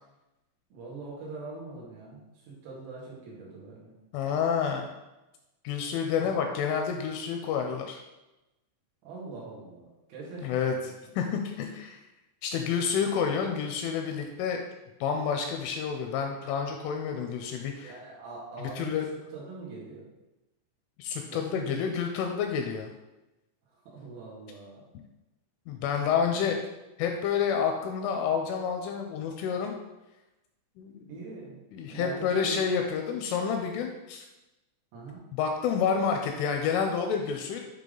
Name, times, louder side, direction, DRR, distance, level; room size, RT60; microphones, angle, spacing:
voice 1, 0.7-3.9 6.2-6.4 9.0-10.9 17.8-19.0 19.3-20.1 21.3-21.8 23.7-24.9 26.3-26.5 31.1-31.6 31.9-32.6 34.9-35.2, right 3 dB, 90° right, -5 dB, 4.6 m, -43 dB
voice 2, 4.1-4.9 5.6-8.0 10.4-12.0 12.4-14.6 15.0-17.9 18.8-19.1 21.0-22.9 25.7-26.6 27.0-29.7 30.8-31.0 31.7-34.2 35.3-37.6, left 6 dB, 85° left, 3 dB, 2.8 m, -29 dB
10.0 x 3.5 x 3.8 m, 1.0 s
omnidirectional pair, 5.9 m